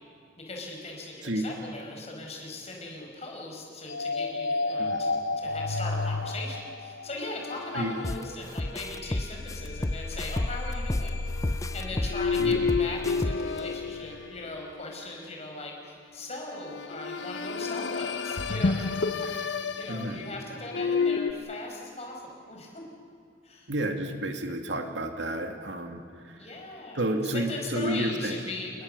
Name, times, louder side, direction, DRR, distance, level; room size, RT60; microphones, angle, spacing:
voice 1, 0.4-11.2 11.7-19.5 19.8-22.8 23.4-23.7 26.4-28.8, left 2 dB, 35° left, 1 dB, 5.1 m, -39 dB
sound 1, 3.9-15.0 16.5-21.3, left 4 dB, 80° left, 0.9 m, -31 dB
sound 2, 8.0-8.2 8.6-11.1 11.4-13.6, left 1 dB, 20° left, 0.5 m, -30 dB
voice 2, 19.9-20.2 23.7-26.5 26.9-28.4, right 1 dB, 90° right, 4 dB, 2.4 m, -31 dB
29.0 x 21.0 x 6.7 m, 2.4 s
head